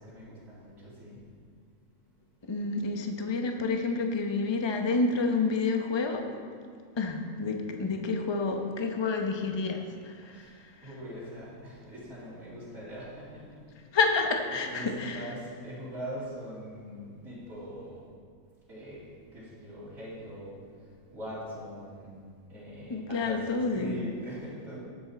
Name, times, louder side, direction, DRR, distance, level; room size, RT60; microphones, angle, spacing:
voice 1, 0.0-2.3 10.3-13.9 14.7-18.1 18.5-24.8, equal, 75° right, -11 dB, 3.3 m, -43 dB
voice 2, 2.5-6.3 7.0-10.9 13.9-15.3 22.9-24.0, left 4 dB, 20° left, 3 dB, 0.8 m, -29 dB
18.5 x 7.7 x 4.2 m, 2.1 s
omnidirectional pair, 1.5 m